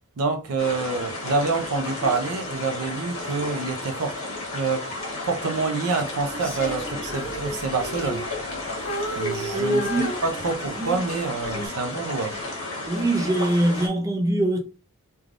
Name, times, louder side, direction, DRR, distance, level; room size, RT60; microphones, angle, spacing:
voice 1, 0.2-4.2 4.5-4.9 5.3-8.2 9.1-9.8 10.2-12.4, right 4 dB, 70° right, 0.5 m, -27 dB
sound 1, 0.6-13.9, left 2 dB, 65° left, 1.1 m, -33 dB
Female singing, 6.3-8.6 8.8-10.9 11.4-11.7, right 1 dB, 45° left, 1.4 m, -33 dB
voice 2, 9.5-10.1 10.8-11.0 11.5-11.7 12.9-14.6, right 1 dB, 15° right, 0.5 m, -23 dB
3.2 x 2.3 x 2.5 m
head